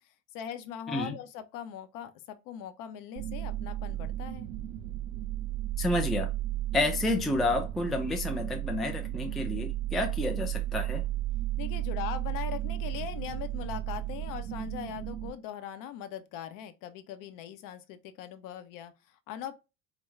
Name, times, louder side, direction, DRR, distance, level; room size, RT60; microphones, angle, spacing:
voice 1, 0.3-4.5 11.6-19.5, left 10 dB, 50° left, 0.7 m, -40 dB
sound 1, 3.2-15.3, right 14 dB, 55° right, 0.8 m, -34 dB
voice 2, 5.8-6.3 6.7-11.0, left 2 dB, ahead, 0.4 m, -30 dB
4.5 x 2.1 x 3.1 m
figure-of-eight pair, 70°, 43 cm